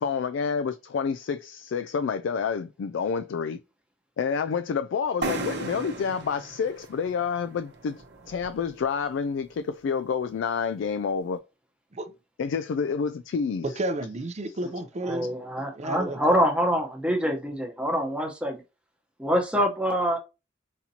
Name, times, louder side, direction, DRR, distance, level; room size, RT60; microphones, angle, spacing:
voice 1, 0.0-3.6 4.2-11.4 12.4-13.6, left 6 dB, 70° left, 0.3 m, -28 dB
sound 1, 5.2-8.8, right 3 dB, 60° right, 0.9 m, -36 dB
voice 2, 13.6-15.3 15.7-16.2, right 1 dB, 35° right, 0.5 m, -31 dB
voice 3, 15.1-18.6 19.2-20.2, equal, 5° right, 0.8 m, -25 dB
4.3 x 4.1 x 2.8 m
head